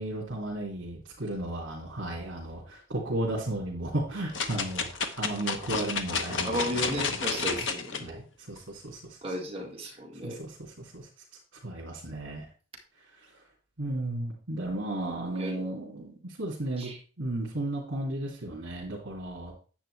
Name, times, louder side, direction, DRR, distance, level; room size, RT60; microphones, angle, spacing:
voice 1, 0.0-7.7 8.0-9.2 10.2-11.1 11.6-12.5 13.8-16.9 17.2-19.5, right 1 dB, 60° right, -5 dB, 2.4 m, -34 dB
sound 1, 4.3-8.0 8.6-8.7, left 5 dB, 65° left, 1.0 m, -31 dB
voice 2, 6.4-8.2 9.2-10.4 15.4-15.6 16.8-17.0, equal, 30° right, 0 dB, 1.8 m, -34 dB
10.0 x 7.7 x 3.3 m, 0.38 s
head